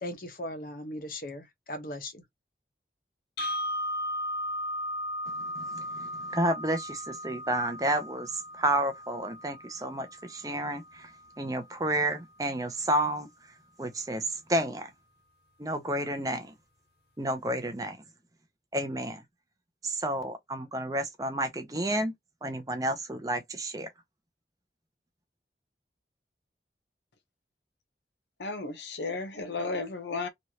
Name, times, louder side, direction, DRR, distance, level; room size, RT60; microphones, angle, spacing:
voice 1, 0.0-2.2, left 1 dB, 50° left, 0.9 m, -38 dB
sound 1, 3.4-11.4, equal, 70° left, 1.4 m, -37 dB
voice 2, 5.6-11.1 11.4-13.3 13.8-14.9 15.6-16.5 17.2-18.0 18.7-19.2 19.8-22.1 22.4-23.9, right 1 dB, 20° right, 0.6 m, -31 dB
voice 3, 28.4-30.3, left 3 dB, 85° left, 0.9 m, -34 dB
3.1 x 2.4 x 2.8 m
head